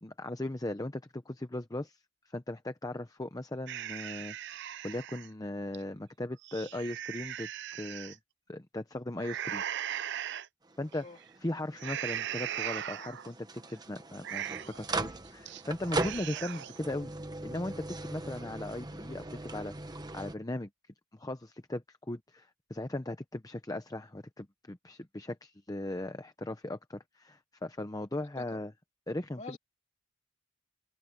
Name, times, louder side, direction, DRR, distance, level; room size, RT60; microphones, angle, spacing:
voice 1, 0.0-2.0 2.3-7.5 7.8-8.2 8.5-9.6 10.8-11.1 11.4-17.1 17.4-20.7 21.1-28.7 29.1-29.6, left 1 dB, 15° left, 0.7 m, -38 dB
sound 1, 3.7-5.3 5.7-5.8 6.3-8.2 9.2-10.5 10.9-11.3 11.8-13.3 13.7-13.8 14.1-14.9 15.3-15.6 15.9-16.8, right 11 dB, 60° right, 0.6 m, -38 dB
sound 2, 10.6-20.3, right 2 dB, 20° right, 1.2 m, -40 dB
voice 2, 11.0-11.2 28.4-28.6 29.4-29.6, left 3 dB, 35° left, 3.1 m, -45 dB
open air
head